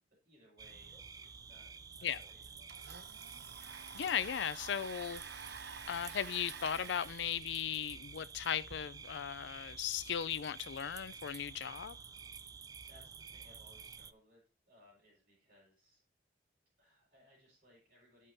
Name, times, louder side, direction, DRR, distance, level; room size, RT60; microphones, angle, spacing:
voice 1, 0.0-2.8 12.2-12.6 12.8-16.0 16.8-18.3, equal, 45° right, 4.8 m, -65 dB
sound 1, 0.6-14.1, right 5 dB, 20° right, 0.3 m, -51 dB
Domestic sounds home sounds, 2.6-8.8, right 6 dB, 75° right, 0.7 m, -50 dB
voice 2, 3.9-5.2 5.9-12.0, left 8 dB, 85° left, 0.4 m, -37 dB
13.0 x 5.5 x 2.7 m
head